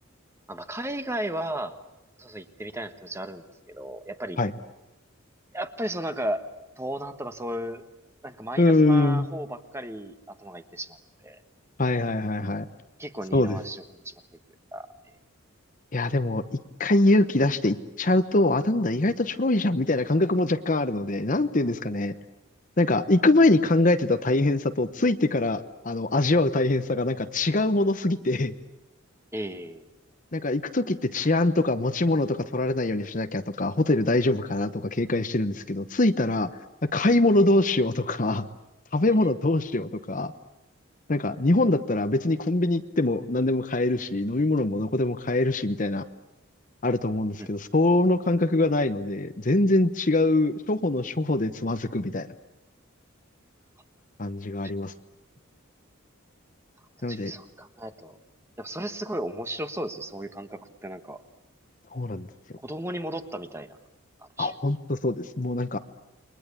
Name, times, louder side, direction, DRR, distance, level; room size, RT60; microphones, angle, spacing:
voice 1, 0.5-1.7 2.2-4.4 5.5-6.4 6.8-7.8 8.2-11.0 11.2-11.4 13.0-14.2 14.7-14.9 29.3-29.9 39.2-39.3 47.4-47.5 57.0-58.2 58.6-61.2 62.6-63.8 64.2-64.5, right 1 dB, 10° right, 9 dB, 1.3 m, -35 dB
voice 2, 8.6-9.3 11.8-12.7 13.3-13.6 15.9-16.4 16.8-22.1 22.8-28.5 30.3-36.5 36.8-38.4 38.9-40.3 41.1-46.0 46.8-52.3 54.2-54.9 57.0-57.3 61.9-62.3 64.4-65.8, left 2 dB, 40° left, 10 dB, 0.9 m, -23 dB
29.0 x 22.5 x 8.3 m, 0.94 s
head